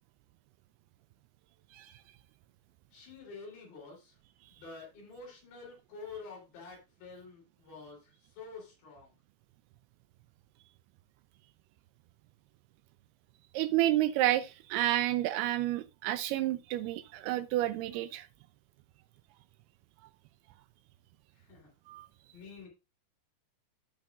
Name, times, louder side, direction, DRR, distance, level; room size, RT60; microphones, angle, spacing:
voice 1, 2.9-4.1 4.5-8.0 8.4-9.1 21.5-21.6 22.3-22.7, left 4 dB, 75° left, 5.6 m, -48 dB
voice 2, 13.5-18.3 21.9-22.1, right 14 dB, 85° right, 2.3 m, -30 dB
15.5 x 5.3 x 2.5 m
omnidirectional pair, 4.9 m